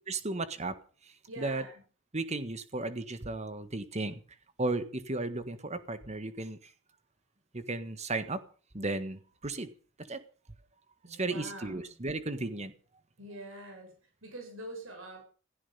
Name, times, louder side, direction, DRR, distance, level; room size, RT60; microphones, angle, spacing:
voice 1, 0.1-0.7 1.4-1.6 2.1-4.1 4.6-6.6 7.5-8.4 8.7-9.7 10.1-10.2 11.1-12.7, right 2 dB, 35° right, 12 dB, 1.6 m, -34 dB
voice 2, 1.3-1.7 11.0-11.9 13.2-13.9 14.2-15.2, right 1 dB, 80° right, 3 dB, 7.5 m, -44 dB
16.5 x 15.5 x 5.5 m, 0.40 s
head